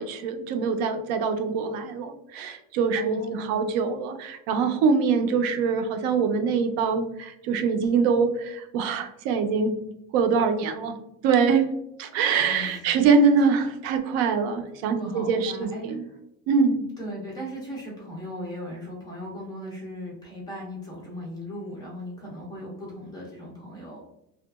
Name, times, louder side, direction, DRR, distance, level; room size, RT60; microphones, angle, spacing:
voice 1, 0.0-9.7 10.1-10.9 11.2-11.6 12.0-16.0 16.5-16.8, right 5 dB, 70° right, 7 dB, 0.5 m, -24 dB
voice 2, 2.9-3.7 12.4-12.9 13.5-13.7 14.9-16.2 17.0-24.0, equal, 15° left, -4 dB, 0.3 m, -38 dB
2.7 x 2.3 x 2.3 m, 0.84 s
cardioid pair, 180°, 34 cm